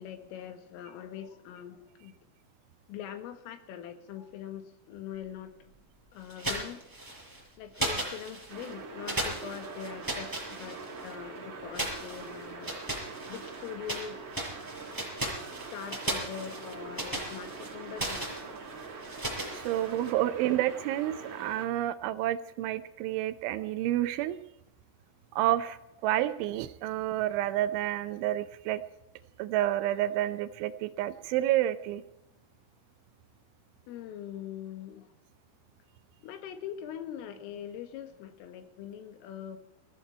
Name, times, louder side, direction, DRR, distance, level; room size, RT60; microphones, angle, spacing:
voice 1, 0.0-2.1 2.9-5.7 6.1-6.9 7.6-12.7 13.3-14.2 15.7-18.7 33.9-35.1 36.2-39.6, left 9 dB, 80° left, 8 dB, 4.2 m, -42 dB
sound 1, 6.3-7.4 7.7-8.7 9.1-11.1 11.7-14.1 14.3-20.1, right 1 dB, 5° right, 5.9 m, -36 dB
sound 2, 8.5-21.7, right 4 dB, 40° right, 2.6 m, -44 dB
voice 2, 19.5-24.4 25.3-28.8 29.4-32.0, right 13 dB, 80° right, 11 dB, 3.0 m, -29 dB
20.5 x 15.5 x 4.4 m, 0.86 s
omnidirectional pair, 5.8 m